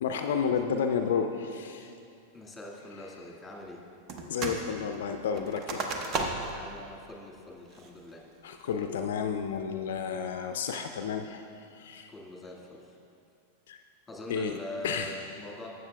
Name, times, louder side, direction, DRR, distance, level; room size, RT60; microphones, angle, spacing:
voice 1, 0.0-1.9 4.3-5.8 8.4-11.4 11.7-12.1 13.7-13.8 14.3-14.6 14.8-15.2, left 6 dB, 70° left, 7 dB, 0.3 m, -31 dB
voice 2, 2.3-3.8 6.5-8.2 12.1-13.0 13.9-15.7, left 1 dB, 10° left, -2 dB, 1.8 m, -43 dB
sound 1, 4.1-4.7 4.9-6.6 7.1-7.2 7.7-8.1 8.6-9.0, right 3 dB, 40° right, 0.9 m, -34 dB
12.5 x 7.9 x 2.3 m, 2.5 s
hypercardioid pair, 95°, 0 cm